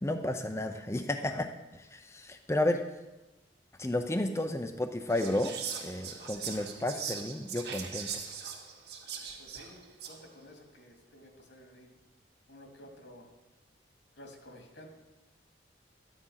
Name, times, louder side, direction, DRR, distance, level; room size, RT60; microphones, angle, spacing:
voice 1, 0.0-2.8 3.8-5.5 5.8-8.1, left 1 dB, 15° left, 5 dB, 0.6 m, -32 dB
Whispering, 5.1-10.3, right 7 dB, 60° right, 1.9 m, -40 dB
voice 2, 9.4-9.8 10.0-11.9 12.5-13.3 14.2-14.9, equal, 80° left, 2 dB, 2.4 m, -52 dB
13.0 x 9.6 x 5.7 m, 1.0 s
head